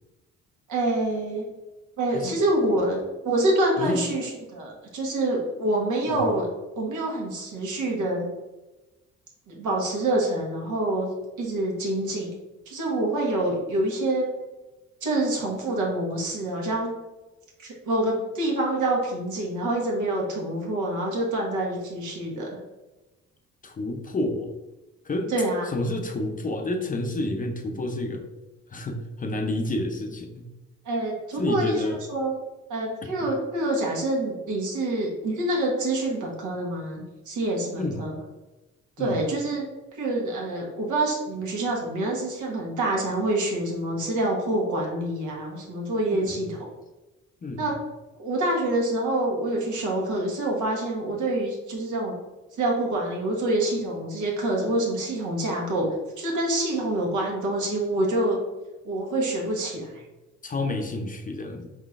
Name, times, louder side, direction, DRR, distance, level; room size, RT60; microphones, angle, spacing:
voice 1, 0.7-1.4 2.0-6.5 6.8-8.3 9.5-11.1 11.4-12.3 12.7-14.3 15.0-16.9 17.6-22.5 25.3-25.7 30.8-31.8 32.1-32.3 32.7-38.2 39.0-39.6 39.9-46.7 47.6-47.7 48.2-52.1 52.6-55.9 56.2-58.4 58.8-60.0, right 1 dB, 75° right, -1 dB, 1.3 m, -26 dB
voice 2, 3.8-4.1 6.1-6.3 23.6-24.5 25.0-25.3 25.7-28.2 28.7-30.5 31.4-32.0 33.0-33.3 37.8-38.1 39.0-39.2 46.1-46.5 47.4-47.6 60.4-61.7, left 1 dB, 25° left, 4 dB, 0.5 m, -29 dB
4.5 x 3.8 x 2.4 m, 1.1 s
cardioid pair, 90°, 30 cm